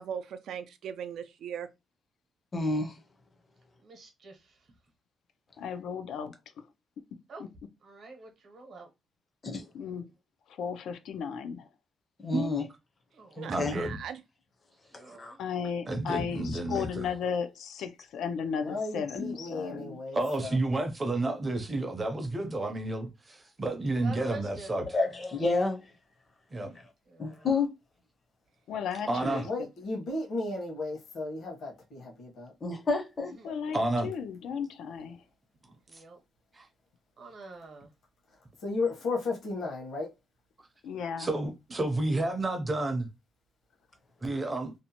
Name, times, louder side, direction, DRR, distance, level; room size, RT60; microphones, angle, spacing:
voice 1, 0.0-1.7 13.4-14.2, right 8 dB, 75° right, 0.3 m, -38 dB
voice 2, 2.5-3.0 9.4-9.7 12.2-12.6 13.4-13.8 15.2-15.3 24.9-25.9 27.2-27.7 32.6-33.3, left 3 dB, 30° left, 0.5 m, -29 dB
voice 3, 3.8-4.7 7.3-7.4 7.8-8.9 13.1-13.6 14.9-15.4 23.9-24.7 25.0-25.4 27.0-27.5 29.0-29.5 33.3-33.5 35.9-36.2 37.2-37.9, right 3 dB, 55° right, 0.8 m, -47 dB
voice 4, 5.6-6.7 7.1-7.2 9.7-10.1 10.5-11.7 15.4-20.0 28.7-29.4 33.4-35.2 40.8-41.3, left 7 dB, 90° left, 0.4 m, -35 dB
voice 5, 13.5-14.0 15.9-17.1 20.1-24.8 26.5-26.7 29.1-29.4 33.7-34.1 36.5-36.7 41.2-43.1 44.2-44.7, right 2 dB, 20° right, 0.5 m, -30 dB
voice 6, 18.6-20.6 29.4-32.5 38.6-40.1, left 3 dB, 70° left, 1.0 m, -34 dB
2.6 x 2.1 x 2.8 m
wide cardioid pair, 155°, 0 cm